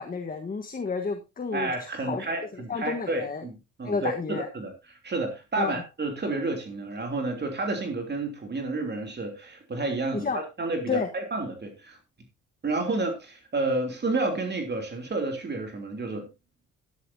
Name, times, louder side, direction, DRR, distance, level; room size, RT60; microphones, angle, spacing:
voice 1, 0.0-2.2 2.5-3.4 3.8-4.5 5.5-5.8 10.2-10.4 10.9-11.1, left 5 dB, 30° left, 6 dB, 1.4 m, -31 dB
voice 2, 1.5-12.0 12.6-16.3, right 2 dB, 35° right, 4 dB, 3.2 m, -30 dB
12.0 x 11.0 x 2.8 m, 0.25 s
cardioid pair, 90°, 30 cm